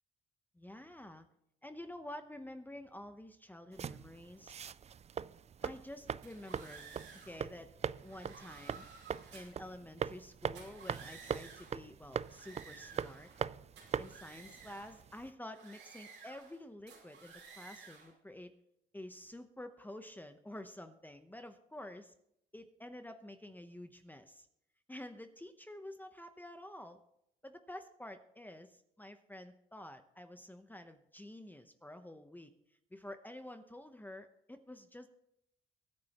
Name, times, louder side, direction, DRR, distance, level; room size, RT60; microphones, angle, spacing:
voice 1, 0.5-1.2 1.6-4.5 5.6-6.8 7.2-7.7 8.0-8.9 9.3-13.3 14.0-18.5 18.9-22.1 22.5-24.5 24.9-27.0 27.4-32.5 32.9-35.1, left 1 dB, 10° left, 8 dB, 0.9 m, -49 dB
sound 1, 3.7-15.3, right 7 dB, 35° right, 0.4 m, -42 dB
sound 2, 6.2-7.5 8.0-9.6 10.4-11.8 12.2-13.5 13.8-15.0 15.5-16.6 16.9-18.1, right 5 dB, 80° right, 5.2 m, -54 dB
23.5 x 9.3 x 3.0 m, 0.77 s
cardioid pair, 90°, 20 cm